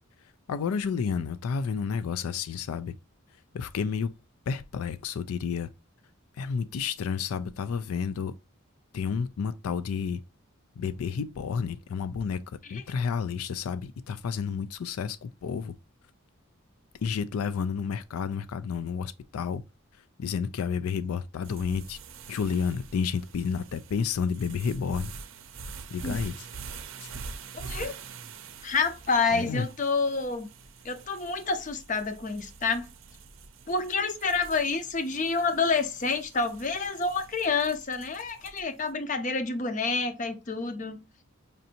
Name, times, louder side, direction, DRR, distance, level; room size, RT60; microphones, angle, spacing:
voice 1, 0.5-2.9 3.5-4.2 4.5-5.7 6.4-8.3 8.9-10.2 10.8-15.7 17.0-19.6 20.2-22.0 22.3-25.1 25.9-26.3 27.0-27.1 29.3-29.7, left 6 dB, 85° left, 0.4 m, -31 dB
sound 1, 21.4-38.8, right 4 dB, 65° right, 0.5 m, -45 dB
voice 2, 27.5-27.9 28.6-30.5 30.8-32.9 33.7-41.0, left 4 dB, 35° left, 0.6 m, -28 dB
5.2 x 2.6 x 2.7 m
head